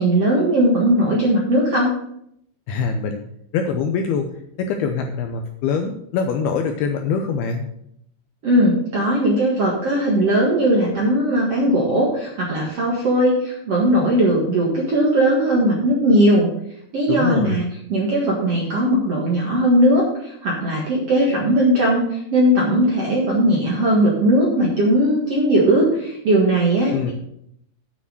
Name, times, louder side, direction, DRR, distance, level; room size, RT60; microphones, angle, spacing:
voice 1, 0.0-1.9 8.4-16.5 16.9-17.6 17.9-27.1, right 1 dB, 55° right, -3 dB, 1.7 m, -18 dB
voice 2, 2.7-3.2 3.5-4.3 4.6-7.7 17.1-17.6 26.9-27.1, left 5 dB, 80° left, 5 dB, 2.3 m, -23 dB
9.7 x 6.1 x 6.3 m, 0.73 s
omnidirectional pair, 5.2 m